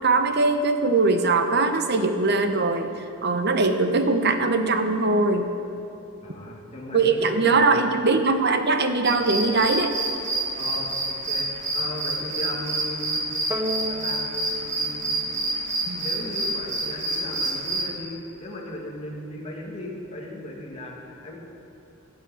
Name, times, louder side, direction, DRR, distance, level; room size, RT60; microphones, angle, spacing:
voice 1, 0.0-2.9 3.2-5.5 6.9-10.0 15.9-16.0, right 3 dB, 50° right, 7 dB, 1.0 m, -21 dB
voice 2, 6.2-8.1 10.5-13.5 13.9-15.1 16.0-21.4, left 1 dB, 30° left, -3 dB, 2.2 m, -37 dB
sound 1, 9.0-17.9, right 2 dB, 35° right, 1.7 m, -28 dB
sound 2, 13.5-16.1, equal, 10° right, 0.6 m, -34 dB
16.5 x 6.4 x 9.1 m, 2.9 s
head